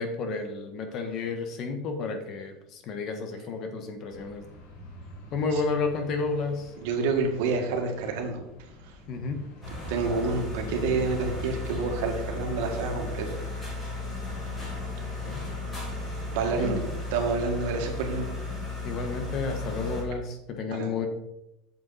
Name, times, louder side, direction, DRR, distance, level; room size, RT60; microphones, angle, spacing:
voice 1, 0.0-4.4 5.3-6.7 9.1-9.4 15.1-15.4 16.6-16.8 18.8-21.1, left 4 dB, 40° left, 6 dB, 1.3 m, -31 dB
sound 1, 4.1-13.2, right 1 dB, 90° left, 3.0 m, -47 dB
voice 2, 6.8-8.4 8.8-9.0 9.9-13.4 16.3-16.8 17.1-18.3 20.7-20.9, right 4 dB, 75° right, 2 dB, 1.9 m, -28 dB
sound 2, 9.6-20.0, left 2 dB, 20° left, 3.4 m, -35 dB
8.1 x 7.0 x 4.2 m, 0.88 s
supercardioid pair, 150°, 0 cm